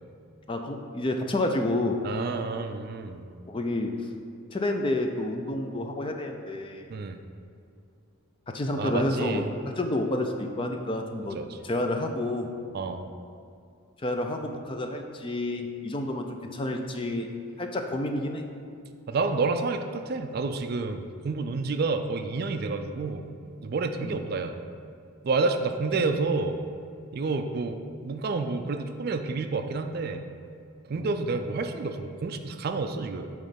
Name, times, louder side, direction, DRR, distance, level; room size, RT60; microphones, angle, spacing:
voice 1, 0.5-2.0 3.5-4.1 4.5-6.9 8.5-11.4 11.6-12.5 14.0-17.3 17.6-18.5 24.0-24.2 30.9-31.1, left 1 dB, 25° left, 4 dB, 0.4 m, -29 dB
voice 2, 2.0-3.3 6.9-7.2 8.8-9.5 11.4-11.5 12.7-13.0 19.1-23.2 23.6-24.6 25.2-26.6 27.1-30.2 30.9-33.3, right 3 dB, 45° right, 7 dB, 0.3 m, -29 dB
8.6 x 3.1 x 5.7 m, 2.5 s
head